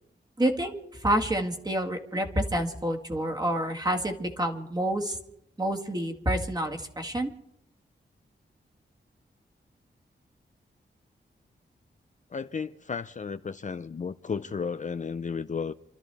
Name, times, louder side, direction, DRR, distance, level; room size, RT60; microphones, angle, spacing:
voice 1, 0.4-5.2 5.6-7.3, right 1 dB, 20° right, 1.8 m, -28 dB
voice 2, 12.3-15.7, left 5 dB, 40° left, 0.5 m, -33 dB
28.5 x 13.0 x 3.5 m
wide cardioid pair, 125°, 19 cm